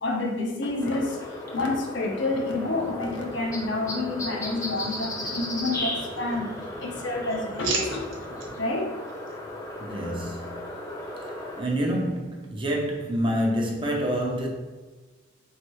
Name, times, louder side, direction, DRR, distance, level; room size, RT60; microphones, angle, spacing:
voice 1, 0.0-6.5 6.8-8.1 8.6-8.9, left 2 dB, 65° left, 0.7 m, -29 dB
sound 1, 0.8-11.6, left 1 dB, 15° left, 0.6 m, -36 dB
sound 2, 2.3-8.6, right 1 dB, 45° right, 0.9 m, -45 dB
sound 3, 4.6-5.7 6.0-6.7 7.1-8.5 9.0-9.4, right 4 dB, 80° right, 0.9 m, -36 dB
voice 2, 9.8-10.5 11.1-14.5, equal, 25° right, 0.6 m, -27 dB
4.4 x 3.2 x 3.0 m
head